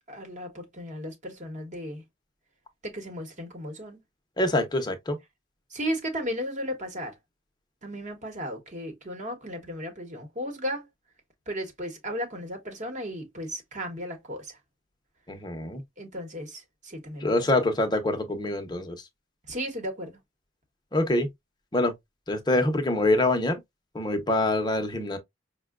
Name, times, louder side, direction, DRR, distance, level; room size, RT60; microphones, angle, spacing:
voice 1, 0.1-2.0 2.8-4.0 5.7-7.2 7.8-10.9 11.5-14.6 16.0-17.7 19.5-20.2, equal, 35° right, 1.1 m, -35 dB
voice 2, 4.4-5.2 15.3-15.8 17.2-19.0 20.9-21.3 21.7-21.9 22.3-23.6 23.9-25.2, left 2 dB, 20° left, 0.8 m, -25 dB
5.4 x 2.2 x 2.4 m
head